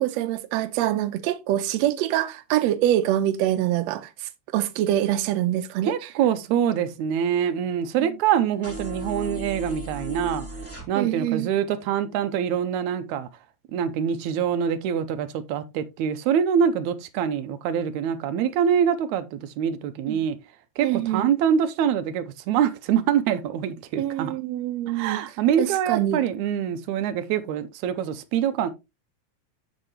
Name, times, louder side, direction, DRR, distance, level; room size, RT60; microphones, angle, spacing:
voice 1, 0.0-4.1 4.5-5.9 8.0-8.1 10.9-11.5 20.1-20.2 20.8-21.3 24.0-25.2 25.6-26.2, right 13 dB, 75° right, 1.9 m, -25 dB
voice 2, 5.8-10.5 10.9-13.3 13.7-20.4 20.8-24.4 24.9-28.7, right 8 dB, 90° right, 2.1 m, -25 dB
sound 1, 8.6-10.8, right 1 dB, 5° left, 1.9 m, -35 dB
7.7 x 7.3 x 2.9 m
omnidirectional pair, 3.3 m